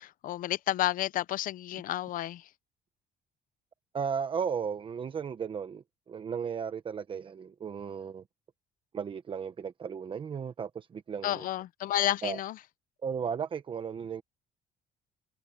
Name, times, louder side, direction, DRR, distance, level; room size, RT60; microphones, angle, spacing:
voice 1, 0.0-2.5 11.2-12.6, left 13 dB, 55° left, 0.7 m, -31 dB
voice 2, 3.9-8.2 8.9-11.5 12.2-12.4 13.0-14.2, right 7 dB, 30° right, 1.0 m, -35 dB
cardioid pair, 140°, 17 cm